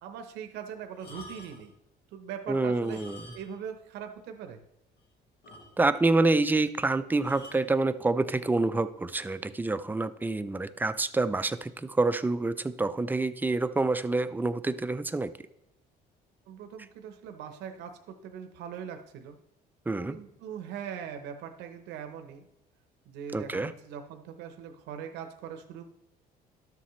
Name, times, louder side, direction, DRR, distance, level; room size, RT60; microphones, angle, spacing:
voice 1, 0.0-1.7 2.1-3.0 3.3-4.6 16.5-19.4 20.1-22.5 23.1-25.9, right 8 dB, 85° right, 6 dB, 0.8 m, -41 dB
sound 1, 0.9-1.8 2.7-3.7 4.0-4.1 4.6-4.7 5.0-5.1 5.4-6.1 7.2-7.7 8.5-8.8, left 1 dB, 80° left, 1.8 m, -49 dB
voice 2, 2.5-3.2 5.8-15.3 19.9-20.2 23.3-23.7, right 3 dB, 10° right, 12 dB, 0.4 m, -27 dB
12.5 x 7.0 x 3.1 m, 0.85 s
cardioid pair, 110°, 17 cm